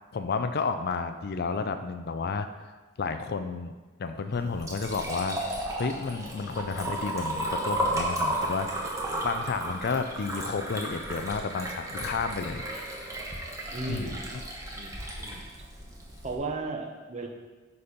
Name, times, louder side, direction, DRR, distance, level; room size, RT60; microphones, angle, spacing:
voice 1, 0.1-2.5 3.0-3.7 4.0-5.4 5.8-8.9 9.2-12.6 13.9-14.4, left 4 dB, 50° left, 9 dB, 0.4 m, -31 dB
Liquid, 4.3-16.3, right 1 dB, 15° right, 1.1 m, -34 dB
voice 2, 13.7-14.2 14.7-15.4 16.2-17.3, right 3 dB, 35° right, 2 dB, 1.0 m, -35 dB
9.6 x 4.3 x 5.1 m, 1.3 s
head